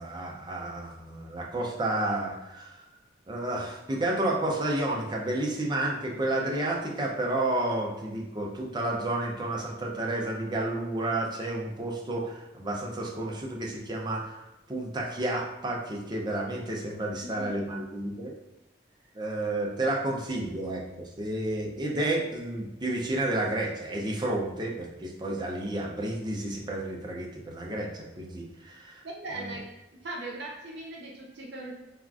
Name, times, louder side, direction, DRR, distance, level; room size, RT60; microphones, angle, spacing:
voice 1, 0.0-2.8 3.3-14.4 14.7-18.3 19.1-29.0 29.3-29.5, right 1 dB, 25° right, -1 dB, 0.4 m, -31 dB
voice 2, 29.0-29.7 30.0-31.7, right 2 dB, 65° right, -1 dB, 0.6 m, -39 dB
3.4 x 2.4 x 2.4 m, 1.0 s
head